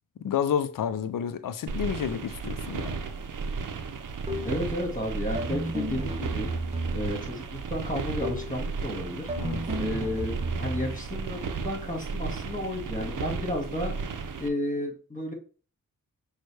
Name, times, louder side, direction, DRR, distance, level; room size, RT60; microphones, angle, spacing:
voice 1, 0.2-3.0 9.4-9.6, left 8 dB, 70° left, 0.5 m, -30 dB
sound 1, 1.7-14.5, right 5 dB, 65° right, 0.6 m, -34 dB
sound 2, 4.3-4.7 5.4-7.3 8.2-8.6 9.3-11.0, right 1 dB, 20° right, 0.7 m, -33 dB
voice 2, 4.4-6.5 6.9-7.4 7.7-9.3 9.8-13.9 14.4-15.3, left 1 dB, 25° left, 1.9 m, -32 dB
6.1 x 2.3 x 3.3 m
cardioid pair, 40°, 34 cm